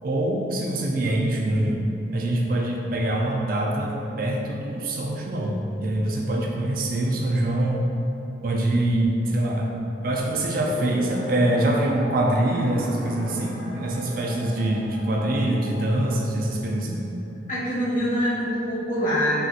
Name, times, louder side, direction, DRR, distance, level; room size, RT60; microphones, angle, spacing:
voice 1, 0.0-1.8 2.1-7.9 8.4-9.7 10.0-17.0, right 1 dB, 50° right, -1 dB, 0.4 m, -24 dB
sound 1, 10.2-16.7, left 1 dB, 80° left, 0.7 m, -39 dB
voice 2, 17.5-19.4, equal, 45° left, -9 dB, 1.1 m, -24 dB
5.4 x 2.5 x 2.7 m, 2.9 s
head